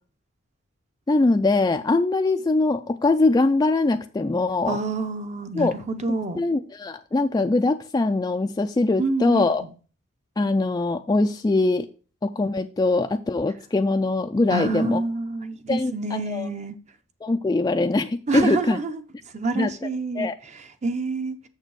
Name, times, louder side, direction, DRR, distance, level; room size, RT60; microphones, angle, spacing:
voice 1, 1.1-4.8 5.5-5.8 6.4-9.6 10.4-11.9 12.2-15.0 15.7-16.5 17.2-18.8 19.6-19.7 20.2-20.3, left 2 dB, 20° left, 0.3 m, -22 dB
voice 2, 4.7-6.4 9.0-9.4 14.5-16.8 18.3-19.0 19.3-21.4, right 3 dB, 35° right, 0.7 m, -27 dB
6.7 x 6.6 x 4.7 m
head